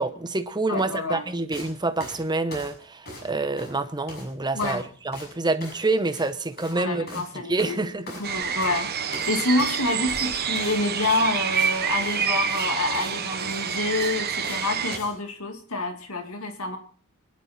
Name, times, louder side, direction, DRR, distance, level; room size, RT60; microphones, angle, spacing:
voice 1, 0.0-7.2 7.5-8.1, right 3 dB, 20° right, 1.0 m, -27 dB
voice 2, 0.7-1.2 4.5-4.8 6.7-7.8 8.2-16.8, left 2 dB, 80° left, 2.1 m, -27 dB
sound 1, 1.5-1.7 2.0-3.3 3.6-4.3 4.5-4.8 5.1-5.3 5.6-5.8 6.1-6.3 6.5-6.8 7.1-7.3 7.6-8.8 9.1-9.3 9.6-11.7 12.0-12.2 12.5-12.7 12.9-13.1 13.4-14.6 14.9-15.1, left 1 dB, 50° left, 6.8 m, -41 dB
sound 2, 8.2-15.0, right 7 dB, 50° right, 1.2 m, -27 dB
25.0 x 11.0 x 4.2 m
head